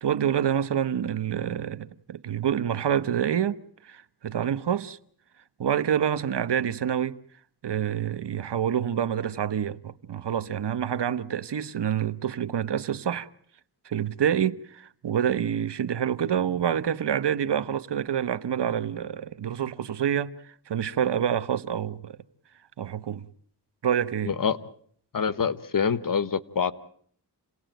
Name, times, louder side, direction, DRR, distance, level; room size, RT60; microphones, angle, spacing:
voice 1, 0.0-3.6 3.8-5.0 5.6-7.2 7.6-13.3 13.8-20.3 20.7-22.2 22.8-23.2 23.8-24.3, right 9 dB, 80° right, 1.0 m, -27 dB
voice 2, 24.2-24.6 25.1-26.7, left 6 dB, 50° left, 1.3 m, -25 dB
29.0 x 18.5 x 9.1 m
wide cardioid pair, 105°, 41 cm